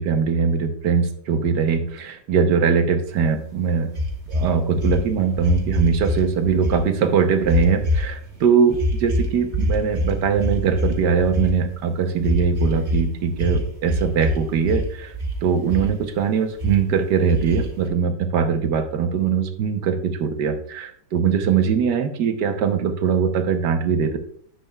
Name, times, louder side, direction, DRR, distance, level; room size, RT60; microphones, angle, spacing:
voice 1, 0.0-3.9 4.3-15.1 15.4-24.2, right 6 dB, 70° right, 8 dB, 1.4 m, -21 dB
sound 1, 4.0-6.2 6.5-6.8 7.4-8.3 8.7-11.7 12.2-13.1 13.3-14.4 14.6-15.4 15.7-16.2 16.6-16.7 17.3-17.9, left 1 dB, 40° right, 1.5 m, -24 dB
10.5 x 7.8 x 2.3 m, 0.63 s
omnidirectional pair, 2.0 m